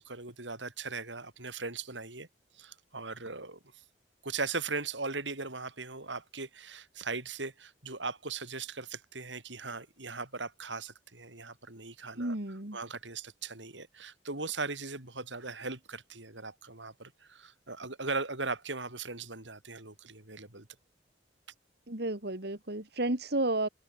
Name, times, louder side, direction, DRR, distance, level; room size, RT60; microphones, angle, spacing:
voice 1, 0.0-2.3 2.6-3.6 4.2-12.3 12.7-20.7, right 4 dB, 90° right, 6.6 m, -39 dB
voice 2, 12.2-12.8 21.9-23.7, right 2 dB, 60° right, 2.8 m, -32 dB
head